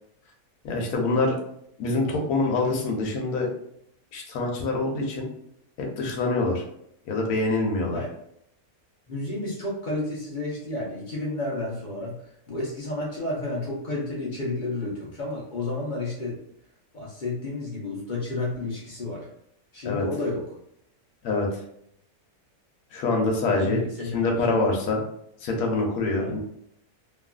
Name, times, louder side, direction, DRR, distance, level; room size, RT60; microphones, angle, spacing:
voice 1, 0.6-1.4 1.8-3.5 4.1-5.3 5.8-6.6 7.1-8.0 19.8-20.0 21.2-21.6 22.9-25.0 25.4-26.4, left 3 dB, 75° left, 1 dB, 1.2 m, -25 dB
voice 2, 9.1-12.1 12.5-16.4 16.9-19.2 19.7-20.4 23.5-24.1 26.2-26.3, left 2 dB, 50° left, -5 dB, 0.6 m, -31 dB
2.9 x 2.4 x 2.3 m, 0.72 s
omnidirectional pair, 1.6 m